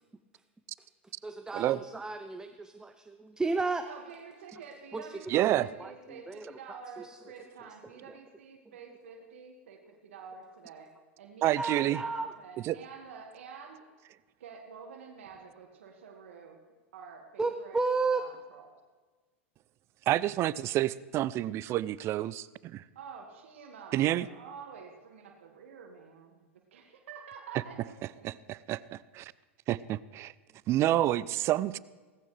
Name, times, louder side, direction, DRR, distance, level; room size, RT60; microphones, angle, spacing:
voice 1, 1.2-3.8 4.9-5.1 5.4-5.5 5.8-5.9 6.3-7.1 11.6-12.3 17.4-18.2, right 3 dB, 10° right, 8 dB, 0.7 m, -33 dB
voice 2, 3.9-13.9 14.4-16.6 16.9-17.8 18.1-18.7 23.0-28.4, right 6 dB, 75° right, 2 dB, 1.9 m, -49 dB
voice 3, 5.3-5.7 11.4-12.0 12.6-12.8 20.1-22.8 23.9-24.3 27.5-27.6 28.2-29.3 29.7-30.3 30.7-31.8, right 14 dB, 40° right, 20 dB, 0.5 m, -28 dB
17.5 x 15.0 x 3.3 m, 1.4 s
hypercardioid pair, 95°, 7 cm